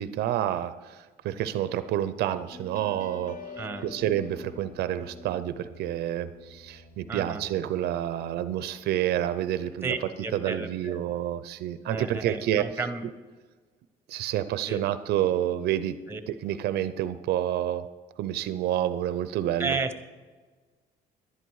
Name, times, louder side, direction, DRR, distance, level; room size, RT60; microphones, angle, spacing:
voice 1, 0.0-3.4 3.8-9.9 10.3-12.7 14.1-15.9 16.3-17.8 18.2-19.8, right 11 dB, 75° right, 12 dB, 0.5 m, -29 dB
sound 1, 2.5-9.7, left 4 dB, 50° left, 1.0 m, -48 dB
voice 2, 3.6-3.9 7.1-7.4 9.8-11.2 11.9-13.1 14.7-14.9 16.1-16.2 19.6-20.0, right 4 dB, 15° right, 9 dB, 1.0 m, -33 dB
11.0 x 11.0 x 4.7 m, 1.4 s
cardioid pair, 110°, 17 cm